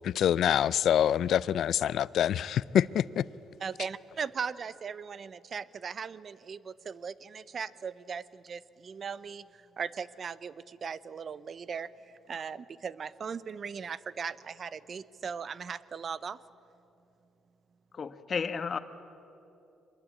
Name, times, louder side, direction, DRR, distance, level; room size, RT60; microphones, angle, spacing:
voice 1, 0.0-3.2, left 10 dB, 70° left, 0.5 m, -26 dB
voice 2, 3.6-11.9 12.3-16.4, right 6 dB, 50° right, 0.7 m, -38 dB
voice 3, 17.9-18.8, left 5 dB, 45° left, 1.3 m, -32 dB
24.5 x 21.5 x 8.5 m
cardioid pair, 90°, 0 cm